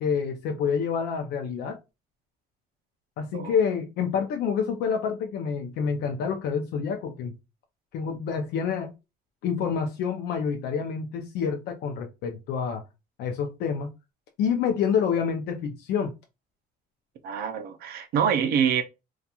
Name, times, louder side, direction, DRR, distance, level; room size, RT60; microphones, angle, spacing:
voice 1, 0.0-1.8 3.2-7.3 7.9-8.9 9.4-12.8 13.2-13.9 14.4-16.1, left 6 dB, 85° left, 0.4 m, -27 dB
voice 2, 17.2-18.8, right 7 dB, 70° right, 0.5 m, -25 dB
2.8 x 2.3 x 2.3 m
cardioid pair, 150°, 16 cm